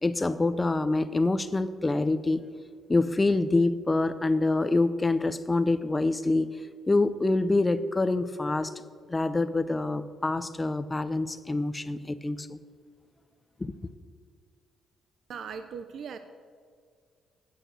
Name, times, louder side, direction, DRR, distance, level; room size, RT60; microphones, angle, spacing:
voice 1, 0.0-2.5 2.9-6.6 6.9-8.7 9.1-12.6 13.6-13.7, left 2 dB, 20° left, 13 dB, 0.5 m, -26 dB
voice 2, 15.3-16.2, right 6 dB, 65° right, 9 dB, 0.5 m, -38 dB
9.0 x 8.0 x 6.3 m, 2.1 s
cardioid pair, 90°, 0 cm